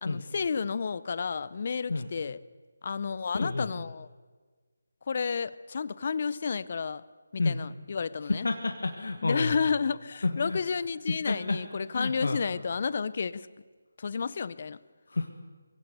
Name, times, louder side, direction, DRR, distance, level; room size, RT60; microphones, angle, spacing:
voice 1, 0.0-2.4 2.8-4.1 5.1-7.0 7.3-8.5 9.2-13.5 14.0-14.8, left 5 dB, 45° left, 18 dB, 0.6 m, -31 dB
voice 2, 3.3-3.7 7.4-7.6 8.4-9.5 10.2-10.6 11.3-11.6 11.9-12.4 15.1-15.3, left 3 dB, 70° left, 4 dB, 1.7 m, -29 dB
22.0 x 17.0 x 6.9 m, 1.4 s
figure-of-eight pair, 160°, 0 cm